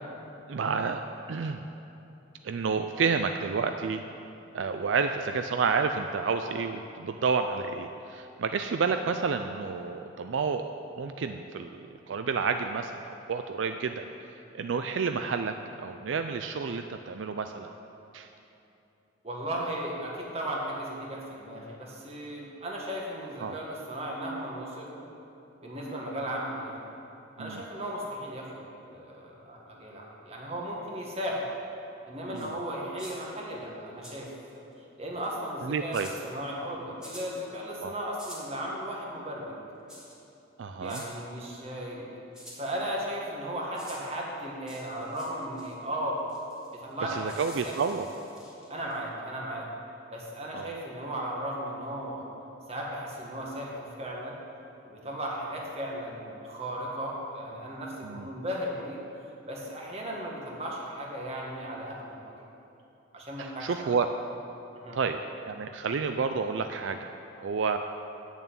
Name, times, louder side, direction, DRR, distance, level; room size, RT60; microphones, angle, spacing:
voice 1, 0.5-1.0 1.3-1.6 2.4-4.0 4.5-10.6 11.0-14.1 14.5-17.7 18.1-18.3 23.4-23.5 27.4-27.6 32.3-32.5 35.6-36.1 37.8-37.9 40.6-41.0 47.0-48.1 50.5-50.7 58.0-58.3 63.4-64.1 64.9-67.8, right 5 dB, 75° right, 7 dB, 0.4 m, -30 dB
voice 2, 19.2-24.9 25.6-26.8 27.4-28.6 28.9-31.4 32.0-34.6 35.0-39.5 40.8-42.2 42.5-46.2 46.7-47.8 48.7-49.7 50.1-52.3 52.7-54.4 54.8-59.0 59.5-62.3 63.1-63.9 64.8-65.0, right 1 dB, 30° right, -3 dB, 1.8 m, -36 dB
sound 1, 32.3-32.5 33.0-33.2 34.0-34.6 35.2-35.5 35.9-36.2 37.0-37.3 38.2-38.5 39.9-40.2 40.8-41.1 42.3-42.6 43.7-44.0 44.7-45.3 45.6-45.7 46.3-49.0, equal, 5° right, 2.1 m, -47 dB
8.1 x 7.2 x 8.5 m, 2.9 s
head